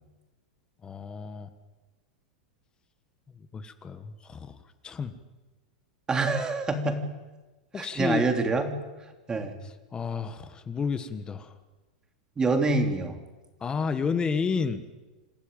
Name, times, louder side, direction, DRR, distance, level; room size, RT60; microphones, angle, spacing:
voice 1, 0.8-1.5 3.5-4.6 4.8-5.2 7.7-8.2 9.6-11.5 13.6-14.8, left 5 dB, 20° left, 10 dB, 1.4 m, -31 dB
voice 2, 6.1-7.0 7.8-8.7 9.3-9.5 12.4-13.2, right 3 dB, 20° right, 5 dB, 3.3 m, -26 dB
27.5 x 13.0 x 9.0 m, 1.2 s
hypercardioid pair, 115°, 4 cm